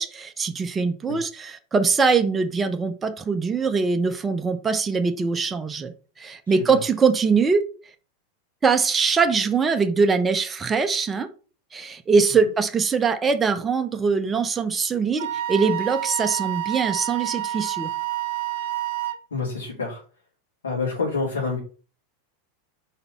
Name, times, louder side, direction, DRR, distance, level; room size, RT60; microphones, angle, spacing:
voice 1, 0.0-7.6 8.6-11.3 11.7-17.9, right 5 dB, 20° right, 7 dB, 0.6 m, -22 dB
Wind instrument woodwind instrument, 15.2-19.2, right 13 dB, 65° right, 0.5 m, -28 dB
voice 2, 19.3-20.0 20.6-21.6, left 4 dB, 85° left, -7 dB, 2.7 m, -27 dB
4.5 x 4.0 x 5.3 m, 0.39 s
hypercardioid pair, 95°, 0 cm